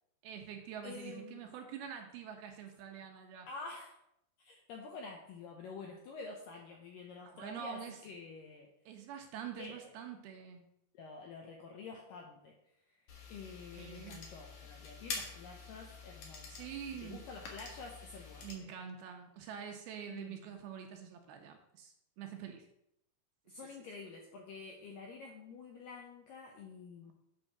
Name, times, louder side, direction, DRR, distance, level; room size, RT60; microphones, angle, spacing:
voice 1, 0.2-3.5 7.3-8.0 8.9-10.7 13.7-14.2 16.5-17.3 18.4-22.7, right 8 dB, 80° right, 4 dB, 2.4 m, -46 dB
voice 2, 0.8-1.6 3.5-4.0 4.4-8.7 9.6-10.0 10.9-12.6 12.9-13.0 13.3-16.7 17.0-18.8 20.1-20.6 23.5-27.1, left 4 dB, 80° left, 0 dB, 2.0 m, -49 dB
sound 1, 13.1-18.5, left 4 dB, 60° left, 2.1 m, -47 dB
8.5 x 3.5 x 6.4 m, 0.80 s
omnidirectional pair, 4.9 m